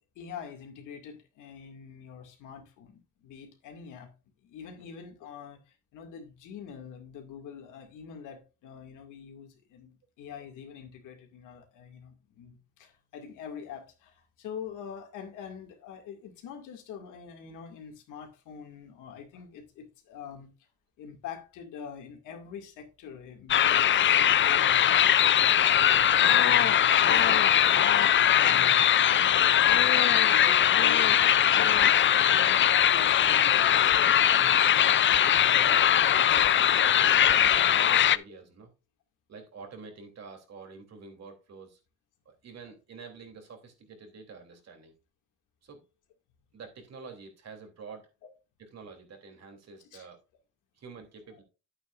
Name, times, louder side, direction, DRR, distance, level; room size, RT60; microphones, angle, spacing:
voice 1, 0.2-4.1 4.4-20.5 21.0-24.8 25.3-26.0 26.4-27.8 28.3-32.7 32.9-35.0 35.4-35.7 49.9-50.1, left 7 dB, 90° left, 2.3 m, -45 dB
sound 1, 23.5-38.2, left 10 dB, 40° left, 0.5 m, -21 dB
voice 2, 28.4-28.8 35.5-35.8 36.1-38.7 39.3-41.8 42.2-44.9 45.6-45.8 46.5-48.1 48.6-50.2 50.7-51.4, right 5 dB, 60° right, 3.2 m, -47 dB
10.0 x 8.7 x 2.6 m
cardioid pair, 90°, 30 cm